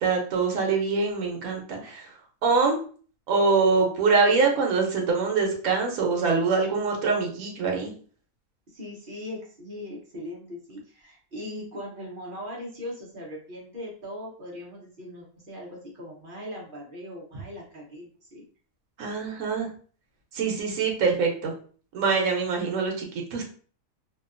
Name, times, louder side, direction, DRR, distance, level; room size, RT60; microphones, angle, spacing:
voice 1, 0.0-2.1 2.4-2.8 3.3-7.9 19.0-19.7 20.3-21.5 21.9-23.1 23.3-23.4, right 4 dB, 80° right, 1 dB, 1.1 m, -24 dB
voice 2, 8.7-18.4, left 1 dB, 45° right, -3 dB, 0.8 m, -39 dB
2.7 x 2.2 x 2.4 m, 0.43 s
omnidirectional pair, 1.5 m